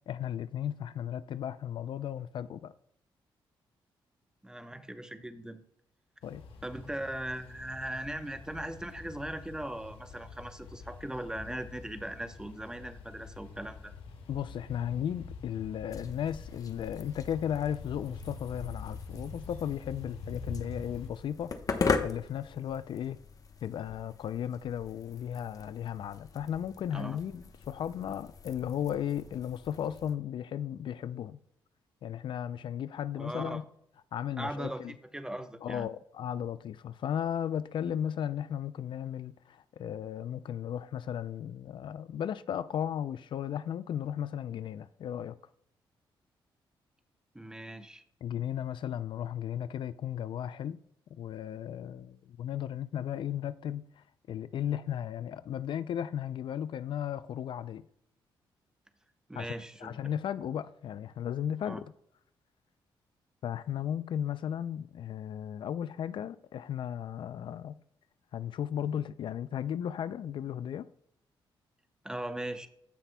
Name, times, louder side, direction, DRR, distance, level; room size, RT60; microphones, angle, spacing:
voice 1, 0.1-2.7 6.2-6.4 14.3-21.5 22.0-23.2 23.6-31.4 32.0-33.6 34.1-34.9 35.6-45.3 48.2-50.8 51.2-57.9 59.3-59.5 59.8-61.9 63.4-67.8 68.3-70.9, left 9 dB, 65° left, 0.4 m, -35 dB
voice 2, 4.4-5.6 6.6-13.9 26.9-27.2 33.2-33.6 34.4-35.9 47.3-48.0 59.3-60.1 61.6-61.8 72.0-72.7, right 1 dB, 10° right, 0.9 m, -39 dB
sound 1, 6.2-21.1, left 4 dB, 85° left, 1.5 m, -46 dB
sound 2, 15.9-30.1, left 5 dB, 40° left, 0.9 m, -39 dB
15.5 x 5.8 x 2.2 m
cardioid pair, 90°, 9 cm